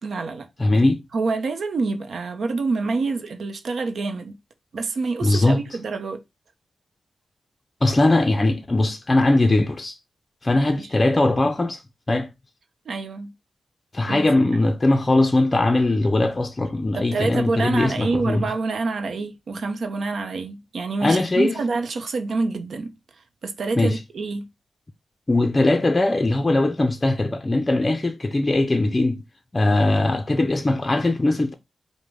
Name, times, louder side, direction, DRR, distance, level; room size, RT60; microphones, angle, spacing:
voice 1, 0.0-0.5 1.1-4.3 4.7-6.2 10.8-10.9 12.9-13.3 14.1-14.6 16.9-22.9 23.4-24.5, right 3 dB, 75° right, 0.6 m, -27 dB
voice 2, 0.6-1.0 5.2-5.6 7.8-10.0 10.4-11.8 12.1-12.3 13.9-18.5 21.0-21.6 23.8-24.0 25.3-29.2 29.5-31.5, left 2 dB, 30° left, 0.4 m, -20 dB
4.9 x 2.1 x 3.4 m
cardioid pair, 60°, 0 cm